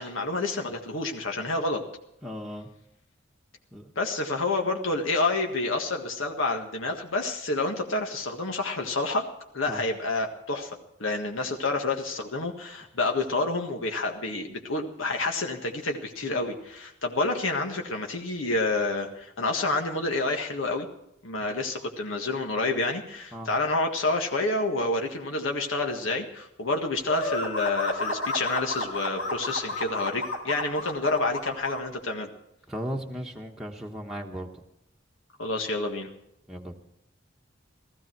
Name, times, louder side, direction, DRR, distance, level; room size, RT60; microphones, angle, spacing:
voice 1, 0.0-1.8 4.0-9.2 9.5-20.9 21.2-32.3 35.4-36.1, left 2 dB, 85° left, 3 dB, 1.7 m, -28 dB
voice 2, 2.2-2.7 3.7-3.9 9.7-9.8 23.3-23.5 32.7-34.6 36.5-36.7, equal, ahead, -2 dB, 1.2 m, -36 dB
sound 1, 27.1-31.8, left 1 dB, 70° left, 3.5 m, -31 dB
16.5 x 14.5 x 4.6 m, 0.81 s
head